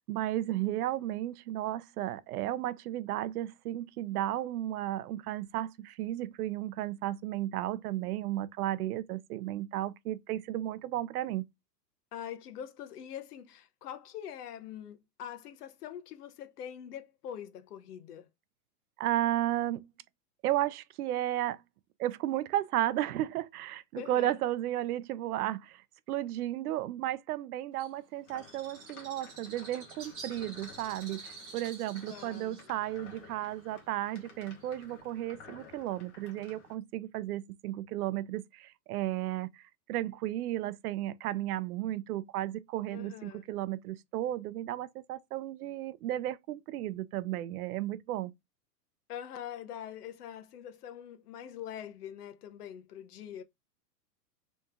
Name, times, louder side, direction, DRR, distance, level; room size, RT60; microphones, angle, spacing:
voice 1, 0.1-11.4 19.0-19.9 20.4-21.6 22.0-25.8 26.1-39.5 39.9-48.3, right 13 dB, 65° right, 0.5 m, -34 dB
voice 2, 12.1-18.3 23.9-24.4 32.1-32.6 42.9-43.5 49.1-53.4, left 9 dB, 70° left, 0.8 m, -44 dB
Bird, 27.8-35.0, right 4 dB, 10° right, 0.4 m, -50 dB
sound 1, 28.3-36.8, left 5 dB, 45° left, 1.5 m, -54 dB
3.3 x 3.2 x 3.5 m
supercardioid pair, 155°, 49 cm